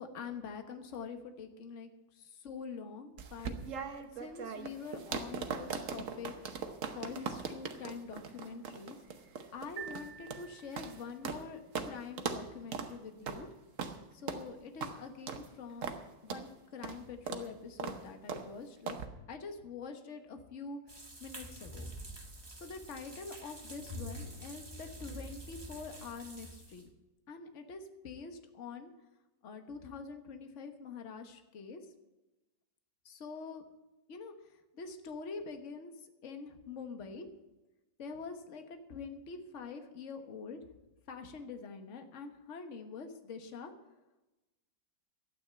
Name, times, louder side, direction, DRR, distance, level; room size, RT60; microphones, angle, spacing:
voice 1, 0.0-3.6 4.1-6.3 6.9-9.0 9.5-13.5 14.1-16.0 16.2-19.0 19.3-21.9 22.6-26.9 27.3-28.9 29.4-31.8 33.0-33.6 34.1-37.3 38.0-40.6 41.1-43.7, left 5 dB, 45° left, 6 dB, 1.4 m, -45 dB
sound 1, 3.2-11.4 11.7-11.9 12.2-12.4 12.7-12.9 13.3-13.4 13.8-14.0 14.3-14.4 14.8-14.9 15.3-15.5 15.8-16.0 16.3-16.4 16.8-17.0 17.3-17.5 17.8-18.0 18.3-18.5 18.9-19.1, right 6 dB, 50° right, 1.2 m, -39 dB
sound 2, 9.8-11.2, right 8 dB, 85° right, 1.3 m, -48 dB
sound 3, 20.9-26.9, equal, 15° right, 1.3 m, -47 dB
12.5 x 9.2 x 7.5 m, 1.1 s
omnidirectional pair, 2.0 m